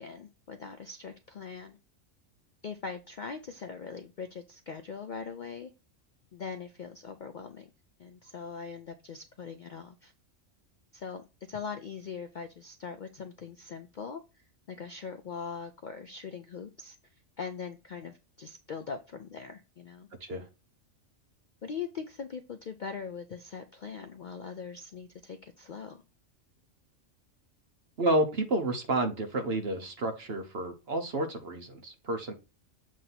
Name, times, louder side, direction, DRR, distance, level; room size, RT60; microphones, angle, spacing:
voice 1, 0.0-1.8 2.6-5.7 6.3-7.7 8.0-10.1 10.9-14.2 14.7-17.0 17.4-20.1 21.6-26.0, left 6 dB, 60° left, 8 dB, 0.5 m, -41 dB
voice 2, 28.0-32.3, right 1 dB, 55° right, 6 dB, 1.1 m, -30 dB
7.4 x 2.7 x 5.8 m, 0.30 s
omnidirectional pair, 1.3 m